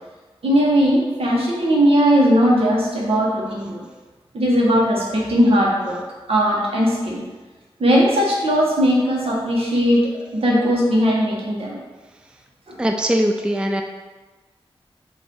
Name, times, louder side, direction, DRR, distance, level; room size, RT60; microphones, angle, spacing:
voice 1, 0.4-3.8 4.3-6.0 6.3-7.2 7.8-10.0 10.3-11.8 12.7-12.8, equal, 70° right, -4 dB, 1.6 m, -18 dB
voice 2, 12.8-13.8, equal, 10° right, 4 dB, 0.4 m, -20 dB
5.6 x 3.2 x 5.4 m, 1.3 s
wide cardioid pair, 90°, 10 cm